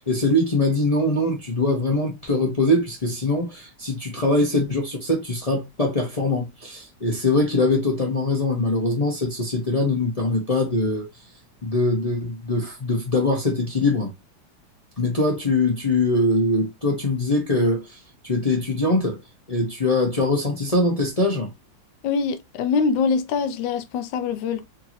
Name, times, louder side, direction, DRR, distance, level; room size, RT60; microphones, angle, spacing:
voice 1, 0.0-11.1 11.6-14.1 15.0-18.0 18.2-19.2 19.5-21.5, left 2 dB, 30° left, 0.7 m, -22 dB
voice 2, 22.0-24.7, left 5 dB, 80° left, 1.3 m, -24 dB
4.5 x 2.9 x 2.9 m
omnidirectional pair, 2.0 m